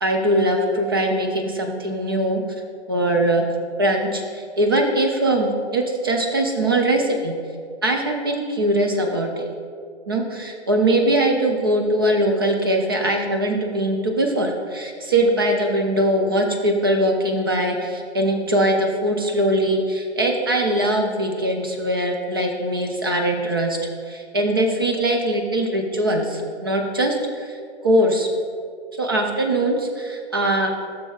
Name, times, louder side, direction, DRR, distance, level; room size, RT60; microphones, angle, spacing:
voice 1, 0.0-2.4 2.9-3.5 3.8-7.3 7.8-9.5 10.1-23.8 24.1-28.3 29.0-30.7, right 1 dB, 20° right, 3 dB, 0.4 m, -21 dB
13.0 x 6.3 x 2.3 m, 2.2 s
hypercardioid pair, 160°, 34 cm